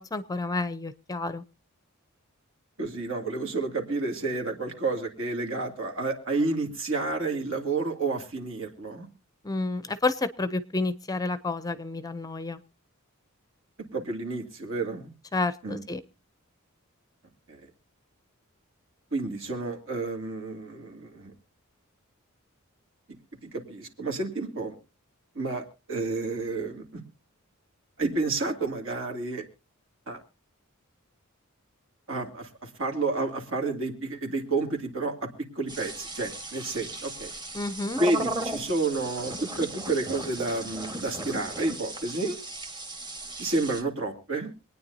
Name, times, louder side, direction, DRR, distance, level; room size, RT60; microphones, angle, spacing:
voice 1, 0.0-1.4 9.4-12.6 15.3-16.0 37.5-38.0, left 3 dB, 15° left, 14 dB, 0.6 m, -30 dB
voice 2, 2.8-9.1 13.9-15.1 15.6-15.8 17.5-17.6 19.1-21.3 23.5-24.7 25.3-27.0 28.0-29.4 30.1-30.2 32.1-35.3 35.6-37.3 38.0-42.4 43.4-44.5, right 3 dB, 65° right, 2 dB, 2.4 m, -30 dB
sound 1, 35.7-43.8, right 2 dB, 20° right, 1.6 m, -36 dB
25.5 x 9.5 x 2.7 m, 0.29 s
head